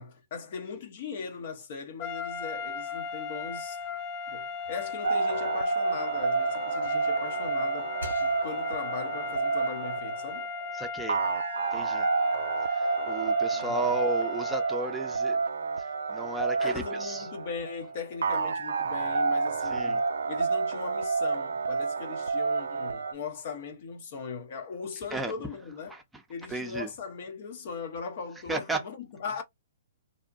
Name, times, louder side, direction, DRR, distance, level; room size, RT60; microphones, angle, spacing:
voice 1, 0.0-3.8 4.3-7.9 8.2-10.5 13.5-14.0 16.6-26.0 26.3-29.4, left 5 dB, 55° left, 0.8 m, -39 dB
sound 1, 2.0-14.8, left 5 dB, 40° left, 0.4 m, -37 dB
sound 2, 3.5-6.7 7.1-8.9, right 1 dB, 90° left, 1.3 m, -49 dB
sound 3, 5.0-23.1, right 4 dB, 75° right, 0.3 m, -29 dB
voice 2, 10.7-11.2 11.7-12.1 12.7-15.4 15.8-17.2 19.7-20.0 25.1-25.3 25.9-26.0 26.5-26.9 28.5-28.8, right 2 dB, 10° right, 0.6 m, -34 dB
2.7 x 2.1 x 2.5 m
hypercardioid pair, 120°, 0 cm